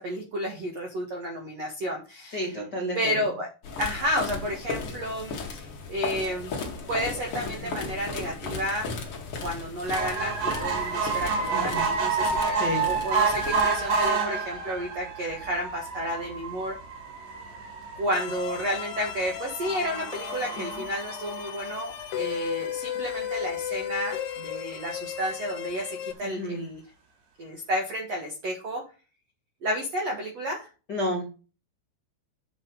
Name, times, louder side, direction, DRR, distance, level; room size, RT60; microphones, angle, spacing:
voice 1, 0.0-2.5 2.9-3.5 3.8-6.5 6.9-8.9 9.4-16.7 18.0-26.8 27.4-28.8 29.6-30.7, equal, 75° right, 1 dB, 1.5 m, -31 dB
voice 2, 2.3-3.2 7.6-7.7 11.5-11.8 12.5-12.8 20.5-20.8 26.2-26.6 30.9-31.3, left 1 dB, 35° left, -1 dB, 1.7 m, -31 dB
sound 1, 3.6-14.1, left 4 dB, 90° left, 1.2 m, -36 dB
sound 2, 9.9-22.5 23.1-23.2 23.5-23.6 23.8-23.9, right 4 dB, 60° right, 4.1 m, -29 dB
sound 3, 18.1-26.1, left 11 dB, 70° left, 2.5 m, -35 dB
8.8 x 7.5 x 3.9 m, 0.33 s
omnidirectional pair, 5.8 m